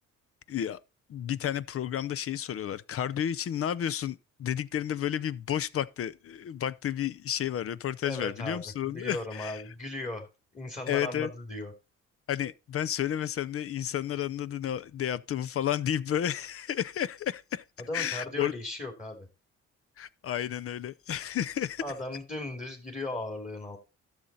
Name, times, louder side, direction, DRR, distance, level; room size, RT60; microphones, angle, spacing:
voice 1, 0.5-0.8 1.1-9.6 10.9-11.3 12.3-17.6 17.9-18.5 20.0-21.8, left 10 dB, 50° left, 0.5 m, -31 dB
voice 2, 8.0-10.3 10.5-11.7 17.9-19.3 21.8-23.8, left 2 dB, 25° left, 2.6 m, -37 dB
12.0 x 6.5 x 4.0 m
cardioid pair, 90°, 30 cm